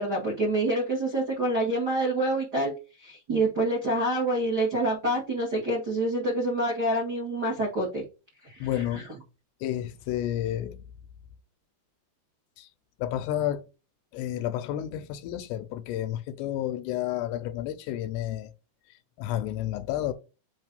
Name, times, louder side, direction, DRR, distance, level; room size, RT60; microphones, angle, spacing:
voice 1, 0.0-8.0 8.4-9.1, right 1 dB, 70° right, 0.9 m, -27 dB
voice 2, 8.6-9.0 9.6-10.9 12.6-12.7 13.0-13.6 14.1-18.5 19.2-20.1, left 12 dB, 85° left, 2.6 m, -31 dB
7.6 x 2.7 x 5.3 m
omnidirectional pair, 5.1 m